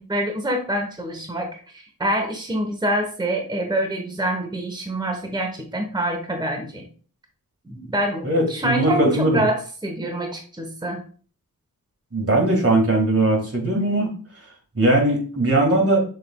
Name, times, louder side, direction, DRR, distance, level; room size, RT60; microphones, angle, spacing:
voice 1, 0.0-6.9 7.6-11.0, right 1 dB, 10° right, 3 dB, 1.0 m, -26 dB
voice 2, 8.2-9.4 12.1-14.1 14.7-16.0, right 1 dB, 40° right, 1 dB, 1.7 m, -19 dB
6.5 x 3.3 x 2.2 m, 0.41 s
cardioid pair, 55°, 37 cm